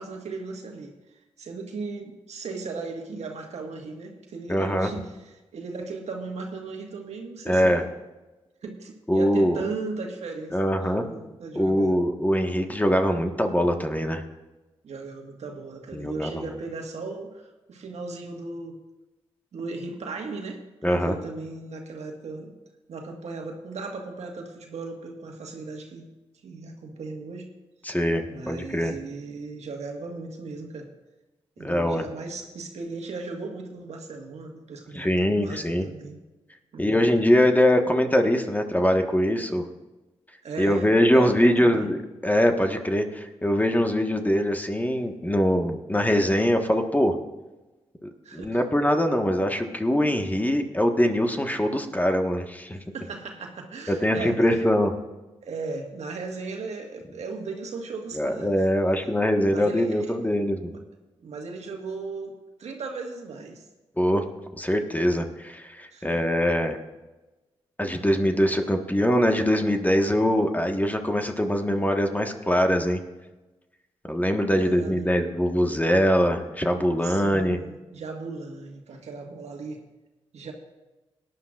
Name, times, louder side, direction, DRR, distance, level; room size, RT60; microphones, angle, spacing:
voice 1, 0.0-7.8 8.6-10.6 11.0-11.9 14.8-18.8 19.5-22.5 22.9-26.1 26.4-27.5 28.3-30.9 31.6-36.2 36.7-37.1 40.4-40.9 41.1-41.9 48.2-48.6 52.9-54.5 55.4-58.6 59.5-60.1 60.7-60.8 61.2-63.6 65.9-66.2 74.5-75.1 77.0-79.8 80.3-80.5, right 3 dB, 70° right, 2 dB, 1.6 m, -37 dB
voice 2, 4.5-4.9 7.4-7.8 9.1-9.6 10.5-11.0 11.5-14.2 15.9-16.4 20.8-21.1 27.8-28.9 31.6-32.0 34.9-35.8 36.8-39.7 40.6-47.1 48.3-52.8 54.0-54.9 58.1-60.7 64.0-64.2 64.5-66.8 67.8-73.0 74.0-77.6, equal, 15° left, 5 dB, 1.4 m, -23 dB
18.0 x 10.5 x 2.5 m, 1.1 s
supercardioid pair, 45°, 12 cm